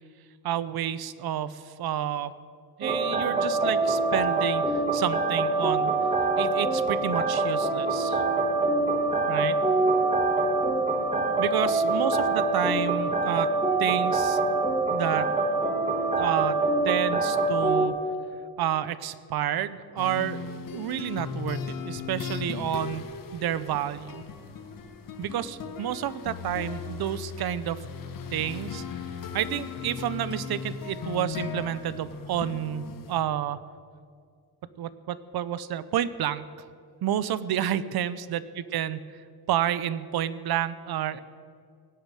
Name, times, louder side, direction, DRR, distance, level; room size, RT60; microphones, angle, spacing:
voice 1, 0.4-2.3 2.8-5.9 6.4-8.2 9.3-9.6 11.4-13.5 13.8-14.4 14.9-15.3 16.2-18.0 18.6-20.5 20.7-23.0 23.3-24.2 25.2-27.8 28.3-28.8 29.3-33.6 34.8-36.5 37.0-38.4 38.7-39.0 39.5-41.2, right 10 dB, 70° right, 15 dB, 0.8 m, -30 dB
sound 1, 2.8-17.9, right 2 dB, 15° right, 1.7 m, -25 dB
sound 2, 20.0-33.2, left 6 dB, 55° left, 1.3 m, -37 dB
17.5 x 7.2 x 9.1 m, 2.2 s
cardioid pair, 135°, 39 cm